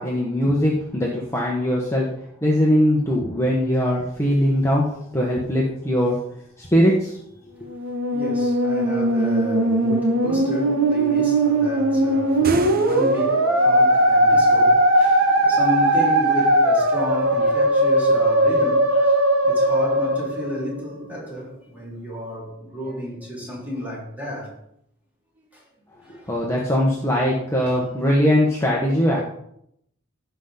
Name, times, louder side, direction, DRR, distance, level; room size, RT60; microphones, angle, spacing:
voice 1, 0.0-2.1 2.4-4.9 5.1-6.2 6.6-7.2 26.1-29.2, equal, 15° left, 1.2 m, -20 dB
voice 2, 7.5-24.6 25.4-25.6 26.0-26.3, equal, 10° right, 4.1 m, -32 dB
Musical instrument, 7.7-21.0, right 1 dB, 85° right, 1.6 m, -19 dB
sound 1, 12.3-13.6, right 4 dB, 50° right, 0.7 m, -33 dB
16.0 x 5.9 x 3.9 m
head